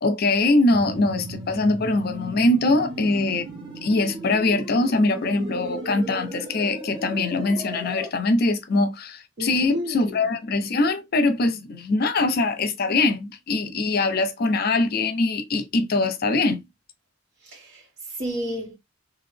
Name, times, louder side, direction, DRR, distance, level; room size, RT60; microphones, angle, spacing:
voice 1, 0.0-3.5 3.8-16.6, left 2 dB, 50° left, 0.5 m, -22 dB
sound 1, 0.7-8.1, right 1 dB, 25° right, 0.7 m, -36 dB
voice 2, 9.4-10.2 17.4-18.8, equal, 60° right, 1.4 m, -31 dB
2.9 x 2.4 x 3.3 m
head